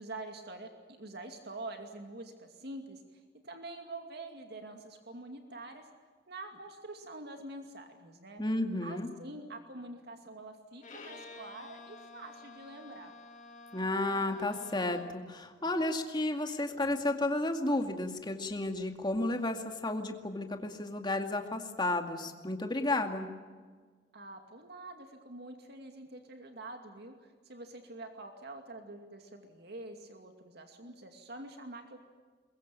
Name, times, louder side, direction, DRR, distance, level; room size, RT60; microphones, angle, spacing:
voice 1, 0.0-3.0 3.4-5.9 6.3-8.4 8.8-13.1 24.1-32.0, right 2 dB, 65° right, 5 dB, 2.5 m, -46 dB
voice 2, 8.4-9.1 13.7-23.3, left 2 dB, 25° left, 5 dB, 2.2 m, -32 dB
Bowed string instrument, 10.8-15.3, left 3 dB, 45° left, 2.3 m, -51 dB
22.5 x 21.5 x 8.9 m, 1.5 s
head